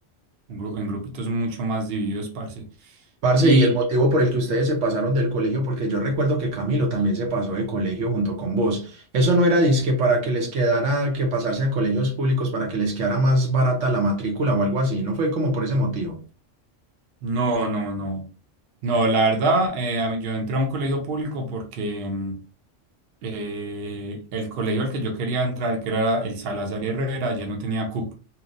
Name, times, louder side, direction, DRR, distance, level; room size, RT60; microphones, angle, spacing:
voice 1, 0.5-2.6 3.4-3.7 17.2-18.3 18.8-22.4 23.2-28.1, right 1 dB, 55° right, 0.8 m, -25 dB
voice 2, 3.2-16.2, right 1 dB, 75° right, 1.1 m, -22 dB
3.0 x 2.0 x 2.5 m
omnidirectional pair, 1.3 m